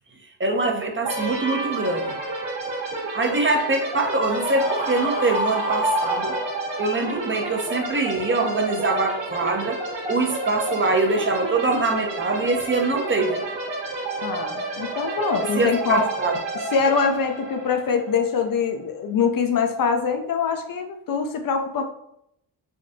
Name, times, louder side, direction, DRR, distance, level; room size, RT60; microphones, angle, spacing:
voice 1, 0.4-2.2 3.1-6.4 6.8-9.8 10.1-13.4 15.4-16.4, right 3 dB, 25° right, 3 dB, 0.5 m, -23 dB
sound 1, 1.0-18.7, right 2 dB, 60° right, 1.1 m, -30 dB
Screaming, 4.3-7.0, right 1 dB, 75° right, 1.0 m, -27 dB
voice 2, 14.2-16.0 16.7-21.8, left 5 dB, 45° left, 5 dB, 0.5 m, -23 dB
3.5 x 2.3 x 2.6 m, 0.76 s
supercardioid pair, 45°, 49 cm